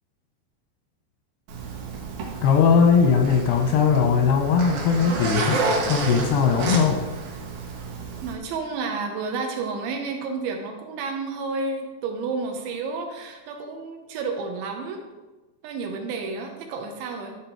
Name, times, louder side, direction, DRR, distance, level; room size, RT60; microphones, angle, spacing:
Zipper (clothing), 1.5-8.3, right 3 dB, 60° right, 2.8 m, -30 dB
voice 1, 2.4-5.6 5.9-7.0, left 6 dB, 80° left, 3 dB, 2.4 m, -19 dB
voice 2, 8.2-15.0 15.6-17.4, right 4 dB, 75° right, 3 dB, 3.1 m, -31 dB
12.5 x 5.8 x 4.5 m, 1.2 s
omnidirectional pair, 5.7 m